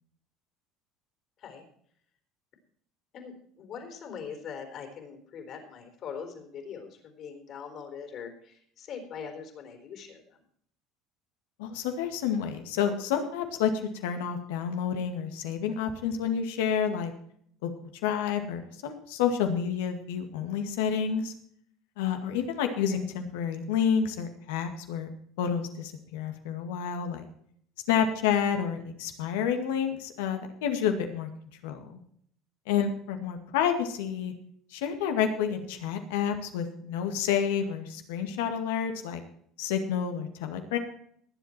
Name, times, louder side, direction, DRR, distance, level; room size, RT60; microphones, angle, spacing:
voice 1, 3.1-10.4 22.9-23.0, left 6 dB, 55° left, 6 dB, 4.2 m, -42 dB
voice 2, 11.6-13.7 14.0-17.1 17.6-17.7 18.0-21.3 22.0-25.1 25.4-27.3 27.9-31.3 31.6-32.0 32.7-34.3 34.7-39.2 39.6-40.8, left 8 dB, 85° left, 6 dB, 2.1 m, -29 dB
20.0 x 8.1 x 4.4 m, 0.64 s
supercardioid pair, 85°, 0 cm